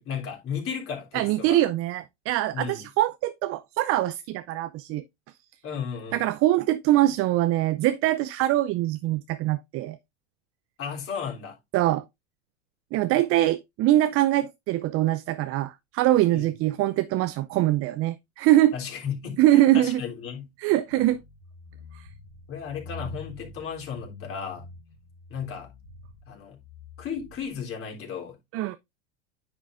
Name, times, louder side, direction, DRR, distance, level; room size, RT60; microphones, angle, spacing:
voice 1, 0.0-1.6 2.5-2.8 5.6-6.2 10.8-11.6 16.3-16.5 18.7-20.5 22.5-24.6 25.3-25.7 26.3-26.6 27.0-28.4, left 7 dB, 40° left, 3.5 m, -34 dB
voice 2, 1.1-5.0 6.1-10.0 11.7-12.0 12.9-18.7 19.4-20.0 20.6-21.2 21.9-22.1 28.5-28.8, right 15 dB, 45° right, 0.6 m, -23 dB
sound 1, 20.9-27.8, left 3 dB, 85° left, 3.4 m, -45 dB
9.8 x 6.0 x 2.6 m
hypercardioid pair, 100°, 34 cm